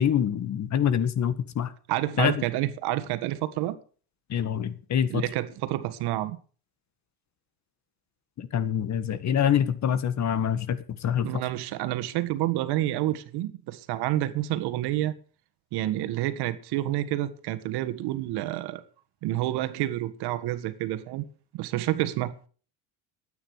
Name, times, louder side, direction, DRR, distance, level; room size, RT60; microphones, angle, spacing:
voice 1, 0.0-1.7 2.2-2.5 4.3-5.2 8.4-11.3, left 9 dB, 40° left, 1.7 m, -25 dB
voice 2, 1.9-3.8 5.1-6.4 11.2-15.1 15.7-18.8 19.2-21.2 21.5-22.3, right 14 dB, 70° right, 1.7 m, -29 dB
13.0 x 9.3 x 6.5 m
cardioid pair, 120°, 41 cm